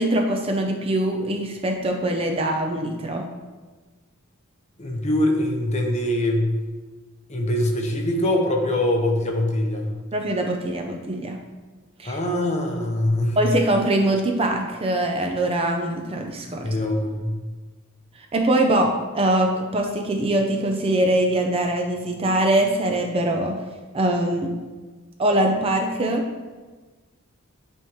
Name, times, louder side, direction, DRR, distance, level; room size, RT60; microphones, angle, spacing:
voice 1, 0.0-3.3 10.1-11.4 12.0-12.2 13.4-16.7 18.3-23.6 23.9-24.5 25.2-26.3, right 1 dB, 25° right, 3 dB, 0.5 m, -22 dB
voice 2, 4.8-6.5 7.3-10.0 12.0-13.4 16.6-17.4, left 1 dB, 30° left, 2 dB, 0.8 m, -23 dB
9.7 x 3.6 x 3.1 m, 1.3 s
head